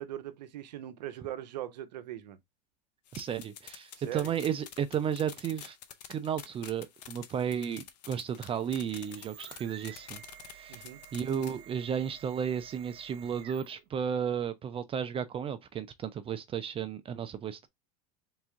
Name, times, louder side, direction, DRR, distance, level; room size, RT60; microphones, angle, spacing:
voice 1, 0.0-2.4 4.0-4.3 10.7-11.0, right 12 dB, 85° right, 0.7 m, -40 dB
sound 1, 3.1-11.6, left 10 dB, 90° left, 0.7 m, -49 dB
voice 2, 3.1-5.8 6.1-10.2 10.5-17.7, right 8 dB, 25° right, 0.5 m, -33 dB
sound 2, 8.6-13.9, right 10 dB, 65° right, 1.1 m, -52 dB
3.6 x 3.0 x 3.5 m
supercardioid pair, 110°, 21 cm